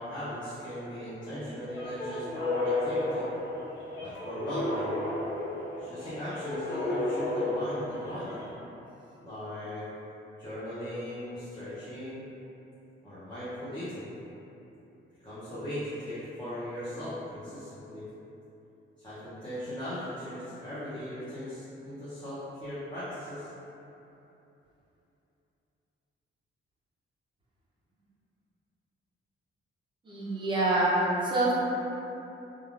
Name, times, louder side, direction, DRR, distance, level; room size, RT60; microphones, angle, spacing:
voice 1, 0.0-3.3 4.0-5.1 5.8-8.4 9.2-9.9 10.4-12.2 13.0-14.1 15.2-18.0 19.0-23.5, left 1 dB, 20° left, -13 dB, 0.6 m, -38 dB
sound 1, 1.7-8.5, left 2 dB, 65° left, 0.9 m, -33 dB
voice 2, 30.0-31.5, right 2 dB, 20° right, -7 dB, 0.6 m, -26 dB
3.3 x 2.3 x 2.4 m, 2.9 s
wide cardioid pair, 160°, 21 cm